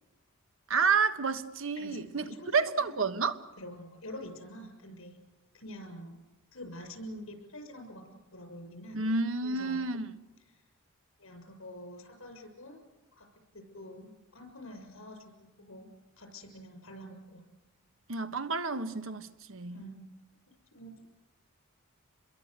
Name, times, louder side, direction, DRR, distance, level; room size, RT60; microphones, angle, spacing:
voice 1, 0.7-3.4 8.9-10.2 18.1-19.8, right 4 dB, 65° right, 1.3 m, -30 dB
voice 2, 1.7-2.9 3.6-5.2 5.5-6.2 6.5-9.0 9.4-9.9 11.2-12.8 13.1-13.3 13.5-15.9 16.2-17.4 19.7-20.1 20.7-21.1, equal, 75° left, 6.8 m, -46 dB
27.5 x 22.5 x 8.1 m
head